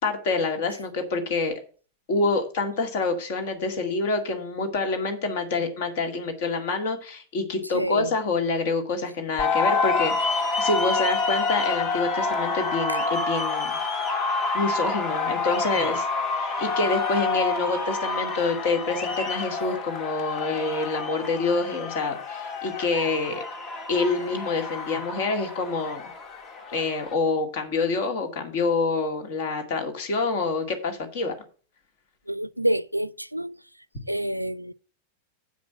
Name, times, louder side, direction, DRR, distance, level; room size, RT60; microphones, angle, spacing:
voice 1, 0.0-1.6 2.1-13.8 14.5-23.4 23.9-26.0 26.7-31.3, left 3 dB, 50° left, 2.2 m, -27 dB
voice 2, 7.7-8.1 12.9-13.0 32.3-33.6 34.1-34.7, right 1 dB, 90° right, 0.3 m, -27 dB
sound 1, 9.4-27.1, left 4 dB, 35° left, 1.8 m, -28 dB
8.4 x 5.2 x 7.4 m
figure-of-eight pair, 90°, 0 cm